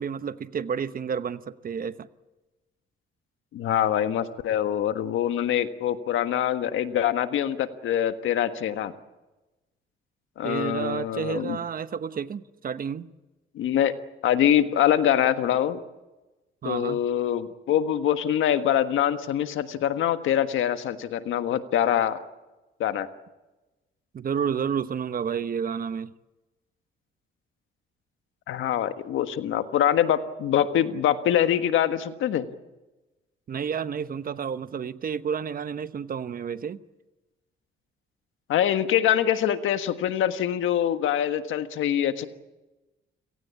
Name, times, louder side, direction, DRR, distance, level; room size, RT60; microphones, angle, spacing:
voice 1, 0.0-2.1 10.4-13.1 16.6-17.0 24.1-26.1 33.5-36.8, right 7 dB, 45° right, 1.0 m, -30 dB
voice 2, 3.5-8.9 10.4-11.6 13.5-13.9 14.2-15.8 16.6-22.2 22.8-23.1 28.5-32.5 38.5-42.3, left 10 dB, 80° left, 1.5 m, -24 dB
29.5 x 17.5 x 8.5 m
cardioid pair, 90°, 20 cm